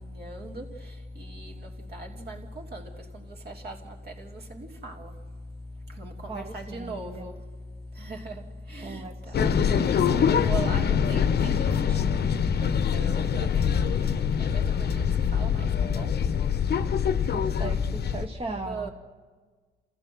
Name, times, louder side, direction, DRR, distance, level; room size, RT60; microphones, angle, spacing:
voice 1, 0.0-0.6 1.2-1.5 1.9-2.4 2.7-2.8 3.5-3.8 4.5-5.1 6.0-7.3 8.0-8.4 8.7-9.0 9.7-9.8 10.2-10.8 11.1-11.5 12.1-13.5 13.7-13.9 14.4-15.0 15.3-15.6 15.9-16.1 18.6-18.9, right 2 dB, 55° right, 3.2 m, -38 dB
voice 2, 6.3-7.3 8.8-9.6 17.3-18.9, right 3 dB, 30° right, 1.3 m, -38 dB
sound 1, 9.3-18.3, left 7 dB, 55° left, 1.0 m, -24 dB
28.0 x 15.0 x 6.3 m
cardioid pair, 90°, 20 cm